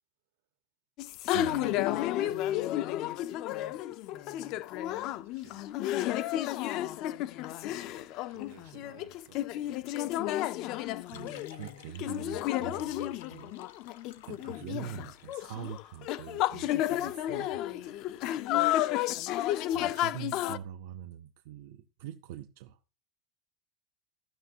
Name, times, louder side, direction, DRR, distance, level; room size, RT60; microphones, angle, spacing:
sound 1, 1.0-20.6, left 14 dB, 40° left, 0.3 m, -32 dB
voice 1, 1.3-2.4 11.1-13.5 14.2-17.6 17.8-17.9 19.7-22.8, right 11 dB, 60° right, 0.5 m, -44 dB
voice 2, 2.1-3.4 4.0-4.1 4.8-6.2 6.5-6.6 7.8-11.7 17.0-18.2 19.3-19.4, right 8 dB, 80° right, 1.3 m, -59 dB
sound 2, 10.8-15.8, left 11 dB, 85° left, 0.8 m, -55 dB
14.0 x 6.0 x 2.7 m
supercardioid pair, 180°, 0 cm